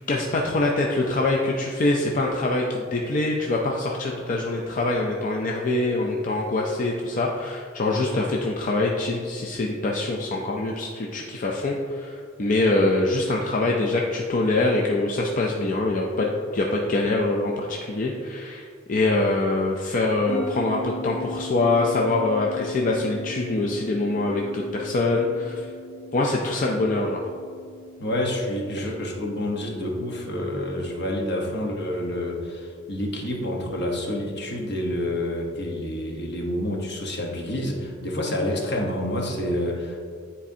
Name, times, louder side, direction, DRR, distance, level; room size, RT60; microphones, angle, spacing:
voice 1, 0.1-25.7 26.1-27.2 28.8-28.9, left 2 dB, 40° left, -1 dB, 0.5 m, -24 dB
sound 1, 20.3-33.0, equal, 15° left, 1.2 m, -40 dB
voice 2, 28.0-40.1, left 1 dB, 60° left, 0 dB, 1.1 m, -28 dB
9.8 x 4.2 x 2.7 m, 2.2 s
head